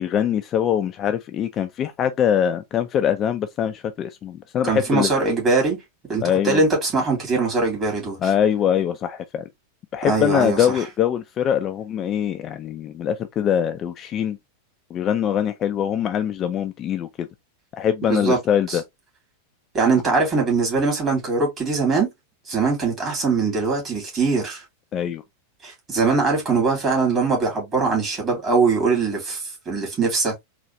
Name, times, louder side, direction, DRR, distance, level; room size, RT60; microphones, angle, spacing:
voice 1, 0.0-5.1 6.2-6.6 8.2-9.4 9.9-14.4 14.9-17.3 17.7-18.8 24.9-25.2, left 9 dB, 30° left, 0.4 m, -23 dB
voice 2, 4.6-5.8 6.1-8.2 10.0-10.7 18.1-18.4 18.7-18.8 19.7-22.1 22.5-24.6 25.6-30.4, right 4 dB, 25° right, 2.3 m, -21 dB
4.0 x 2.5 x 2.9 m
figure-of-eight pair, 90°, 0 cm